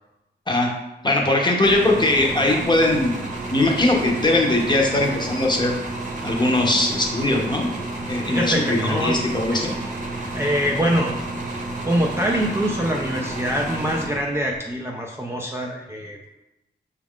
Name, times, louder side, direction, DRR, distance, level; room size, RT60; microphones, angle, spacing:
voice 1, 1.0-3.2 3.5-5.8 6.2-7.7 8.1-9.7, left 2 dB, 25° left, 0 dB, 0.7 m, -20 dB
sound 1, 1.6-14.6, right 2 dB, 40° right, 0.8 m, -31 dB
voice 2, 8.3-9.2 9.5-9.7 10.3-11.2 11.9-16.4, equal, 15° right, -1 dB, 0.4 m, -24 dB
6.0 x 2.4 x 3.6 m, 0.96 s
wide cardioid pair, 145°, 19 cm